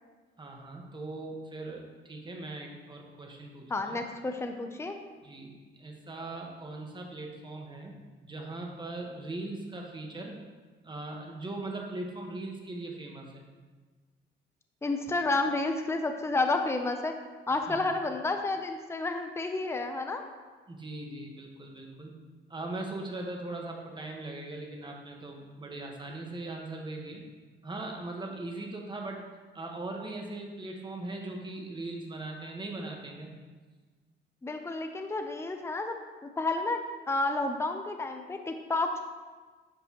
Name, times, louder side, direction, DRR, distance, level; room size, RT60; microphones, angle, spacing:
voice 1, 0.4-4.0 5.2-7.9 8.2-10.4 10.8-13.4 17.5-17.8 20.7-22.1 22.5-27.2 27.6-29.3 29.5-33.3, right 2 dB, 25° right, 0 dB, 1.4 m, -40 dB
voice 2, 3.7-5.0 14.8-17.1 17.5-20.2 34.4-35.9 36.4-36.8 37.1-39.0, left 2 dB, 15° left, 5 dB, 0.6 m, -30 dB
10.0 x 5.2 x 3.0 m, 1.4 s
cardioid pair, 90°, 20 cm